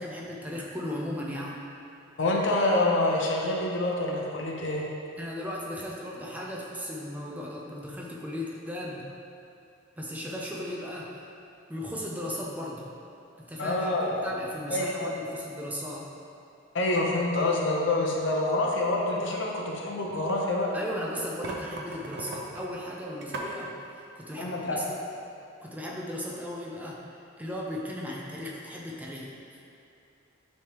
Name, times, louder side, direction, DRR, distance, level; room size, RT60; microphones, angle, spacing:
voice 1, 0.0-1.6 5.2-9.1 10.0-11.2 11.7-12.9 13.4-16.1 20.7-25.0 25.6-27.0 27.4-29.6, equal, 10° right, -4 dB, 0.5 m, -36 dB
voice 2, 2.2-4.9 13.6-14.2 14.7-15.2 16.7-20.8 24.4-24.9, left 2 dB, 65° left, -2 dB, 0.8 m, -27 dB
sound 1, 19.8-20.7 21.1-23.6, right 2 dB, 60° right, 0.6 m, -39 dB
9.8 x 3.4 x 3.0 m, 2.6 s
head